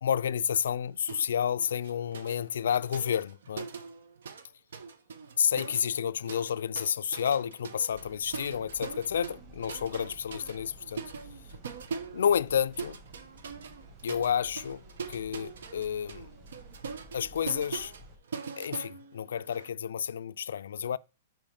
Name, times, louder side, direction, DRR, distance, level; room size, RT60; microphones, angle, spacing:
voice 1, 0.0-3.7 5.4-11.1 12.1-13.0 14.0-14.8 15.1-16.3 17.1-17.9 18.6-21.0, left 8 dB, 85° left, 0.4 m, -30 dB
sound 1, 1.1-1.3 1.6-4.5 4.7-19.7, right 5 dB, 80° right, 1.0 m, -42 dB
sound 2, 7.9-18.2, equal, 30° right, 2.1 m, -53 dB
5.7 x 4.6 x 5.2 m
hypercardioid pair, 180°, 0 cm